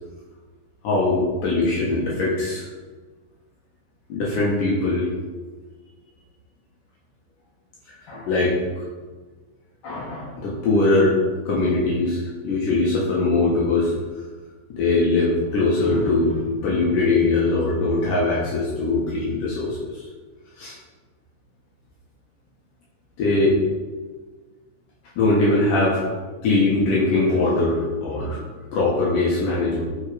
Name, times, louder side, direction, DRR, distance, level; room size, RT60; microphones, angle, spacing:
voice 1, 0.8-2.7 4.1-5.1 8.1-8.6 9.8-11.2 11.5-13.9 14.7-20.0 20.6-20.8 23.2-23.6 25.2-26.0 26.4-28.4 28.7-29.8, left 2 dB, 70° left, -5 dB, 2.9 m, -21 dB
12.0 x 4.5 x 4.9 m, 1.4 s
omnidirectional pair, 4.1 m